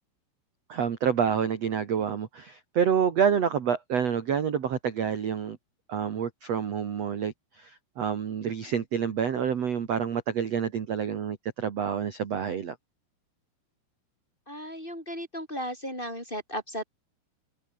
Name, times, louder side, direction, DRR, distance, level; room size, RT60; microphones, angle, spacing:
voice 1, 0.7-5.6 5.9-12.8, right 7 dB, 55° right, 1.9 m, -28 dB
voice 2, 14.5-16.8, equal, 10° left, 3.9 m, -35 dB
omnidirectional pair, 5.9 m